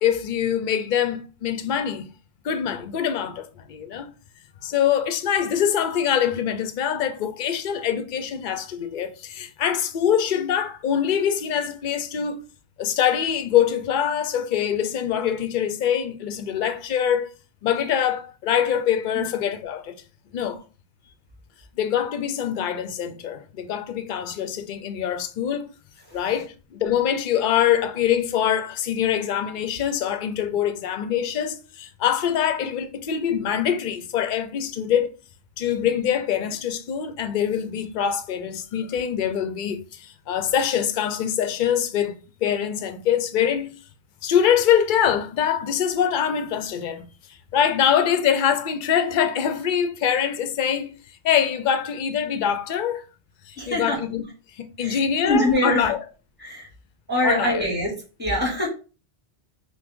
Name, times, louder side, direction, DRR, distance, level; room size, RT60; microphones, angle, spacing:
voice 1, 0.0-2.1 2.4-4.1 4.6-12.4 12.8-17.3 17.6-20.0 20.3-20.6 21.8-25.6 26.1-35.1 35.6-42.1 42.4-43.7 44.2-47.1 47.5-50.9 51.2-53.0 53.5-54.2 54.5-56.0 57.2-57.7, left 9 dB, 55° left, 0.7 m, -24 dB
voice 2, 53.6-54.0 54.8-55.9 56.4-56.7 57.1-57.9 58.2-58.7, left 1 dB, 10° right, 2.2 m, -24 dB
5.8 x 2.2 x 3.6 m
omnidirectional pair, 1.1 m